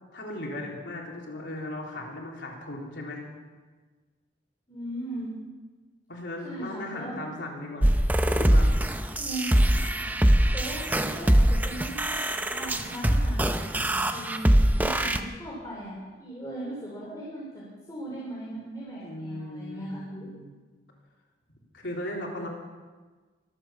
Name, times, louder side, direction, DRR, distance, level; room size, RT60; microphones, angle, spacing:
voice 1, 0.1-3.2 6.1-8.0 8.3-8.7 19.0-20.5 21.7-22.5, left 1 dB, 90° left, -1 dB, 3.6 m, -37 dB
voice 2, 4.7-5.3 6.4-7.3 9.1-9.7 10.5-14.5 14.8-17.6 17.9-20.3, right 1 dB, 20° left, -6 dB, 3.7 m, -38 dB
sound 1, 7.8-15.2, right 1 dB, 10° right, 0.6 m, -23 dB
23.5 x 8.3 x 7.1 m, 1.4 s
head